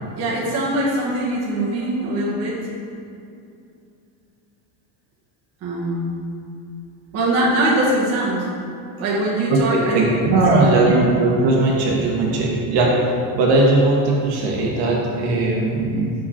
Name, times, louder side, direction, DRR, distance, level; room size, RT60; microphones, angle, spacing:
voice 1, 0.1-2.5 5.6-6.2 7.1-8.5 9.0-10.2 10.5-10.8, right 1 dB, 35° right, -5 dB, 1.1 m, -22 dB
voice 2, 9.5-16.1, right 2 dB, 55° right, -2 dB, 1.2 m, -18 dB
6.3 x 5.1 x 4.2 m, 2.5 s
cardioid pair, 175°, 46 cm